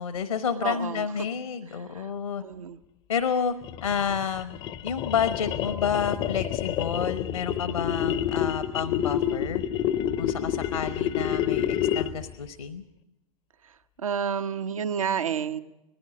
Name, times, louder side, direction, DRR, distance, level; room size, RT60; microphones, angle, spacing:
voice 1, 0.0-2.4 3.1-3.5 3.8-4.6 4.8-9.6 10.2-12.8, left 7 dB, 70° left, 12 dB, 1.0 m, -30 dB
voice 2, 0.6-1.1 1.9-2.1 2.4-2.8 14.0-15.6, right 7 dB, 70° right, 10 dB, 1.0 m, -29 dB
sound 1, 3.6-12.3, left 10 dB, 30° left, 0.6 m, -28 dB
19.0 x 15.5 x 10.0 m, 0.94 s
figure-of-eight pair, 95°, 18 cm